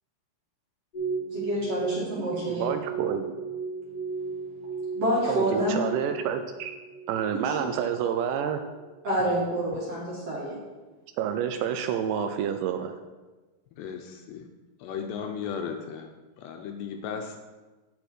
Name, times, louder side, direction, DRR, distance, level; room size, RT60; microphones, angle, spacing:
sound 1, 0.9-8.4 8.7-8.8, right 5 dB, 20° left, 1.0 m, -35 dB
voice 1, 1.3-2.6 4.9-5.8 7.4-7.7 9.0-10.6, right 1 dB, 50° right, -6 dB, 2.0 m, -28 dB
voice 2, 2.5-3.3 5.3-6.7 7.1-8.6 11.2-12.9, right 8 dB, 80° right, 7 dB, 2.6 m, -29 dB
voice 3, 13.8-14.5 14.8-16.1 16.4-17.4, left 6 dB, 80° left, 4 dB, 2.6 m, -35 dB
9.4 x 6.9 x 4.4 m, 1.2 s
omnidirectional pair, 5.3 m